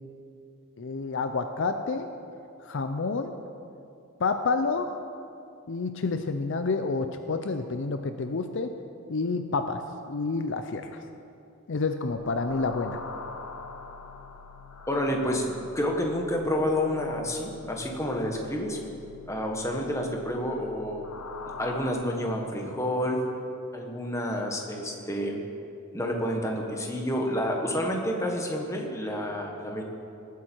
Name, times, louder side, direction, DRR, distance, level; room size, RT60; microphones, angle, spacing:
voice 1, 0.8-2.1 2.6-3.3 4.2-5.0 5.7-8.7 9.1-9.8 10.1-11.0 11.7-13.0, left 4 dB, 55° left, 7 dB, 0.5 m, -29 dB
sound 1, 12.1-21.9, left 4 dB, 80° left, 1.0 m, -44 dB
voice 2, 14.9-18.8 19.3-21.0 21.6-23.2 23.7-25.4 25.9-29.8, equal, 15° left, 1 dB, 1.3 m, -29 dB
18.5 x 8.5 x 4.5 m, 2.6 s
head